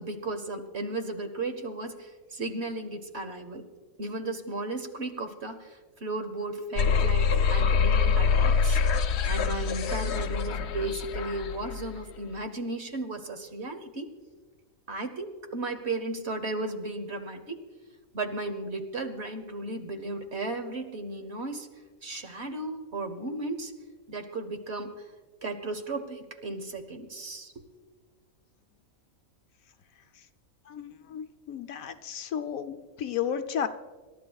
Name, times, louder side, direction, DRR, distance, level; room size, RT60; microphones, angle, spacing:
voice 1, 0.0-3.6 4.0-8.8 9.3-14.1 14.9-17.6 18.1-21.7 22.0-23.7 24.1-24.9 25.4-27.6, right 2 dB, 50° right, 7 dB, 1.3 m, -35 dB
sound 1, 6.8-11.9, left 5 dB, 60° left, 0.8 m, -25 dB
voice 2, 30.7-33.7, left 8 dB, 80° left, 8 dB, 1.1 m, -33 dB
26.5 x 12.5 x 2.3 m, 1.3 s
omnidirectional pair, 1.5 m